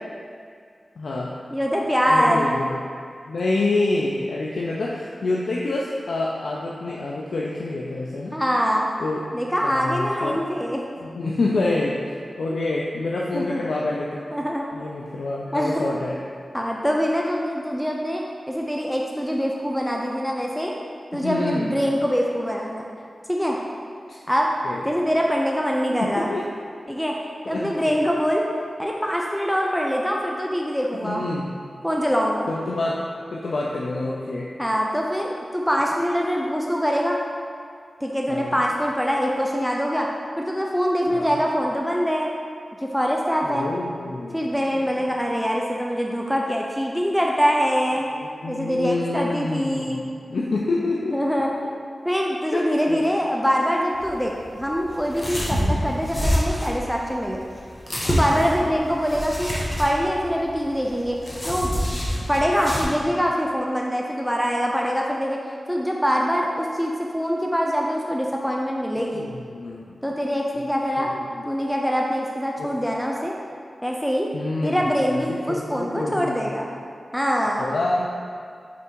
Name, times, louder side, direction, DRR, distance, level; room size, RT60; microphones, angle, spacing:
voice 1, 1.0-1.4 2.1-2.8 3.3-8.3 9.0-9.2 9.6-10.4 11.0-14.3 14.7-16.2 21.1-21.7 24.6-24.8 26.0-26.4 27.5-27.9 31.0-31.5 32.5-33.0 33.3-34.5 38.3-38.6 41.1-41.4 43.4-44.6 48.1-51.2 52.5-52.6 52.9-53.0 58.6-58.8 69.1-70.0 71.0-71.1 71.4-71.5 72.6-72.7 74.3-74.8 75.1-76.4 77.6-78.0, left 2 dB, 85° left, -3 dB, 0.5 m, -27 dB
voice 2, 1.5-2.6 8.3-8.9 9.3-10.8 13.3-13.8 14.3-14.7 15.5-15.8 16.5-20.7 21.1-22.8 23.3-23.6 24.3-24.5 24.8-26.3 26.9-27.1 27.5-28.4 28.8-31.3 31.8-32.5 34.6-37.2 38.0-40.1 40.4-42.3 42.8-43.7 44.3-48.1 48.5-50.0 51.1-51.7 52.0-57.4 58.1-59.5 59.8-61.2 61.5-62.0 62.3-65.4 65.7-69.3 70.0-71.1 71.5-73.3 73.8-74.3 74.6-76.8 77.1-77.7, equal, ahead, -1 dB, 0.5 m, -24 dB
sound 1, 53.9-62.8, equal, 25° left, 1.2 m, -27 dB
6.0 x 3.5 x 4.6 m, 2.2 s
wide cardioid pair, 70°, 0 cm